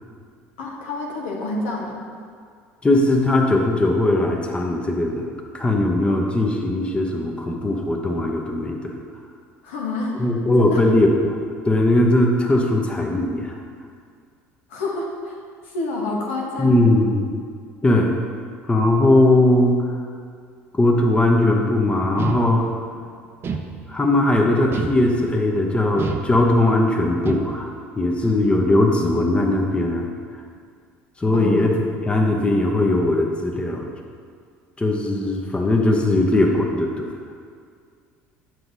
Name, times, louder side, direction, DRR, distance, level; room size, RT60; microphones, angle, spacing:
voice 1, 0.6-2.0 9.6-10.3 10.6-10.8 14.7-15.4 15.6-17.0 31.3-31.7, left 2 dB, 90° left, -1 dB, 1.1 m, -28 dB
voice 2, 2.8-8.9 10.2-11.4 11.6-13.6 16.6-17.3 17.8-18.1 18.7-19.8 20.8-22.7 23.9-30.1 31.2-33.9 34.8-37.2, left 1 dB, 15° left, 0 dB, 0.8 m, -19 dB
sound 1, 22.2-22.9 23.4-24.2 24.7-25.5 26.0-26.8 27.2-27.8, right 5 dB, 40° right, 0.5 m, -30 dB
7.7 x 6.0 x 2.7 m, 2.1 s
supercardioid pair, 80°, 6 cm